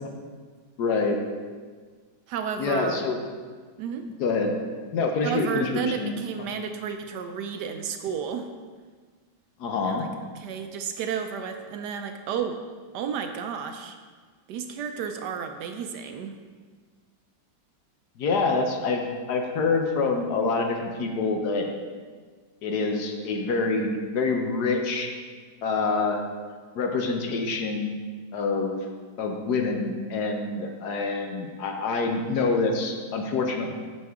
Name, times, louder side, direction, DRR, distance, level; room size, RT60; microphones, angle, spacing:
voice 1, 0.8-1.2 2.6-3.2 4.2-4.5 4.9-6.1 9.6-10.1 18.2-21.7 22.6-25.1 25.6-26.2 26.7-27.9 28.3-28.8 29.2-33.7, left 4 dB, 65° left, 3 dB, 1.2 m, -26 dB
voice 2, 2.3-3.0 3.8-4.1 5.2-8.5 9.8-10.1 10.3-12.6 12.9-14.0 14.5-16.3, right 7 dB, 75° right, 6 dB, 1.1 m, -32 dB
8.3 x 6.4 x 3.5 m, 1.5 s
omnidirectional pair, 2.0 m